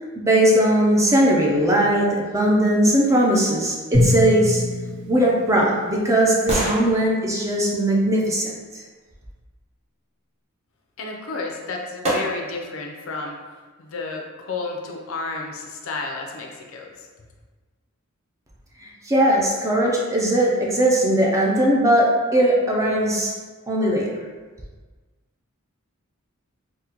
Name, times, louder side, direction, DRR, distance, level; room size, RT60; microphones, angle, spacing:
voice 1, 0.2-4.6 5.1-8.8 19.0-23.4 23.7-24.1, right 1 dB, 15° right, -3 dB, 0.4 m, -19 dB
Drum, 3.9-6.3, left 1 dB, 45° right, 1.2 m, -24 dB
sound 1, 4.9-9.0 11.1-11.2 12.0-12.7 13.2-13.3, right 1 dB, 30° right, 0.8 m, -31 dB
voice 2, 11.0-13.4 13.8-17.1, left 3 dB, 65° left, 1 dB, 0.5 m, -32 dB
3.6 x 2.1 x 2.8 m, 1.4 s
head